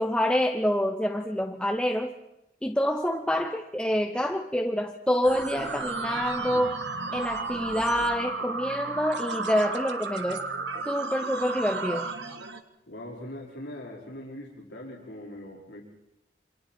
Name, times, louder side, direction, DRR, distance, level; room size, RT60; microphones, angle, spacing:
voice 1, 0.0-2.1 2.6-6.8 7.1-10.5 10.9-12.1, equal, 5° left, 4 dB, 0.8 m, -27 dB
sound 1, 5.2-12.6, right 3 dB, 80° right, 1.6 m, -33 dB
voice 2, 12.9-15.8, left 1 dB, 75° left, -4 dB, 5.0 m, -41 dB
28.5 x 26.0 x 4.5 m, 0.93 s
head